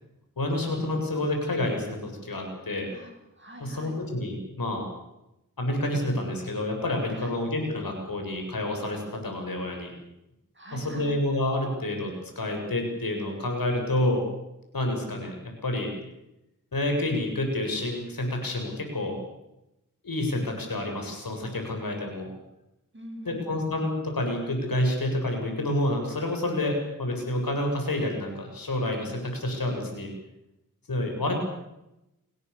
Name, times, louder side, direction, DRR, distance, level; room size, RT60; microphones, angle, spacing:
voice 1, 0.4-2.9 3.6-4.8 5.6-9.9 10.7-14.3 14.7-15.9 16.7-19.2 20.0-22.3 23.3-30.1 30.9-31.3, left 1 dB, 90° left, 2 dB, 7.6 m, -29 dB
voice 2, 2.9-4.0 7.1-7.4 10.5-11.2 22.9-23.6, equal, 35° right, 2 dB, 7.8 m, -44 dB
30.0 x 20.5 x 7.1 m, 0.90 s
wide cardioid pair, 75°, 34 cm